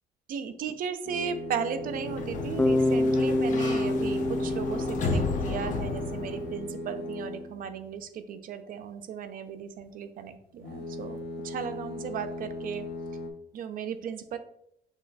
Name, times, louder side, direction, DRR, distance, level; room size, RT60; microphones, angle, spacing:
voice 1, 0.3-12.9 13.5-14.4, right 7 dB, 55° right, 10 dB, 0.5 m, -36 dB
sound 1, 1.0-7.9 10.5-13.3, left 1 dB, 75° left, 1.0 m, -38 dB
Sliding door, 1.8-6.7, left 4 dB, 50° left, 0.7 m, -33 dB
Bass guitar, 2.6-6.5, left 1 dB, 10° left, 0.3 m, -27 dB
6.1 x 2.2 x 3.9 m, 0.73 s
cardioid pair, 110°, 17 cm